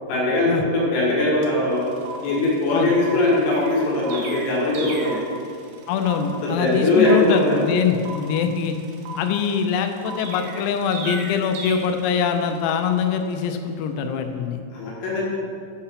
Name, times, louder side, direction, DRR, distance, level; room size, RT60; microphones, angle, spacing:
voice 1, 0.0-1.9 2.2-5.2 6.4-7.7 14.7-15.2, left 2 dB, 70° left, -5 dB, 4.1 m, -21 dB
Film Projector Countdown, 1.4-1.5 1.7-12.9, right 4 dB, 90° right, 3.7 m, -39 dB
Chirp tweet, 3.5-5.3 10.2-11.7, right 3 dB, 70° right, 2.9 m, -36 dB
voice 2, 5.9-8.8 9.2-14.6, left 7 dB, 85° left, 6 dB, 3.3 m, -23 dB
10.0 x 5.6 x 5.7 m, 2.3 s
omnidirectional pair, 6.0 m